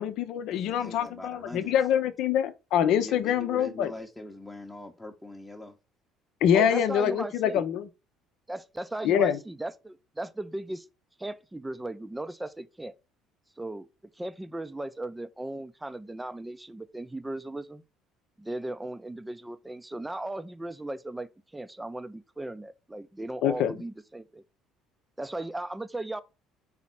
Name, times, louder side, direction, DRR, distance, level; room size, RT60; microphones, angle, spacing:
voice 1, 0.0-3.9 6.4-7.9 9.0-9.4 23.4-23.7, left 9 dB, 60° left, 0.7 m, -25 dB
voice 2, 0.5-1.8 3.0-5.8, left 1 dB, 10° left, 0.9 m, -42 dB
voice 3, 6.5-7.6 8.5-10.9 11.2-12.9 13.6-13.9 14.2-17.8 18.4-24.4 25.2-26.2, right 1 dB, 10° right, 0.6 m, -37 dB
4.3 x 4.0 x 5.6 m
figure-of-eight pair, 55°, 0 cm